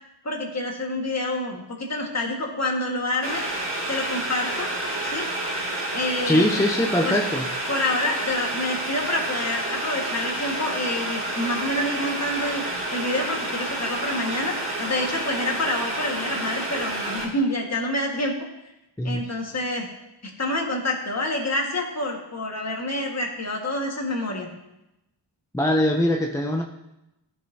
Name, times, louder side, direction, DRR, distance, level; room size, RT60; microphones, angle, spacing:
voice 1, 0.2-3.5 3.9-4.7 5.0-5.3 5.9-6.5 7.0-7.1 7.7-18.3 19.0-19.9 20.2-24.6, left 1 dB, 35° left, 1 dB, 1.7 m, -27 dB
Boiling, 3.2-17.2, right 1 dB, 30° right, 2.7 m, -29 dB
voice 2, 6.2-7.5 19.0-19.2 25.5-26.6, left 1 dB, 5° left, 1 dB, 0.5 m, -22 dB
13.5 x 5.3 x 2.8 m, 0.92 s
cardioid pair, 80°, 44 cm